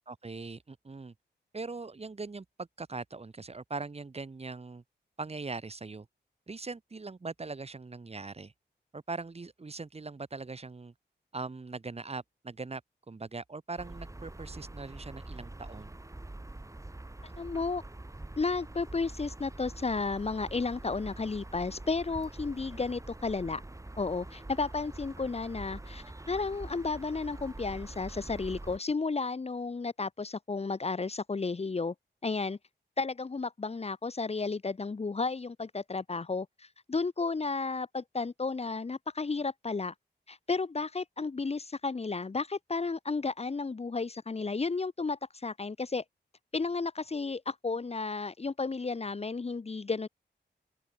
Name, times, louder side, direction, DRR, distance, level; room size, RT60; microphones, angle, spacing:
voice 1, 0.1-1.1 1.5-4.8 5.2-6.1 6.5-8.5 8.9-10.9 11.3-12.8 13.1-15.9, right 3 dB, 35° right, 4.0 m, -41 dB
sound 1, 13.8-28.8, right 2 dB, 15° right, 4.3 m, -45 dB
voice 2, 17.2-17.8 18.4-23.6 24.0-31.9 32.2-32.6 33.0-39.9 40.3-46.0 46.5-50.1, left 4 dB, 35° left, 1.5 m, -33 dB
open air
wide cardioid pair, 110°, 18 cm